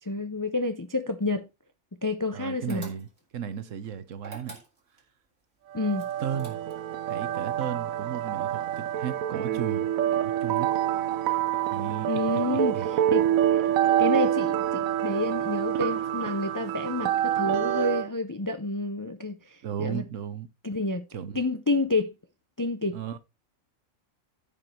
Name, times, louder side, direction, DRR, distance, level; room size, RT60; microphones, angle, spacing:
voice 1, 0.1-1.5 2.0-2.9 5.7-6.1 12.0-13.2 13.5-13.6 14.0-19.4 19.8-20.0 20.6-21.0 21.3-22.1 22.6-23.0, left 2 dB, 35° left, 0.3 m, -29 dB
voice 2, 2.3-3.1 3.3-4.6 6.2-6.6 7.1-10.7 11.7-12.9 19.6-20.5 21.1-21.4 22.9-23.2, right 8 dB, 70° right, 1.3 m, -35 dB
sound 1, 2.7-3.4 4.2-5.1 6.0-7.0, right 3 dB, 50° right, 2.4 m, -46 dB
sound 2, 5.7-18.1, right 11 dB, 90° right, 1.1 m, -27 dB
14.5 x 5.3 x 3.2 m
omnidirectional pair, 1.4 m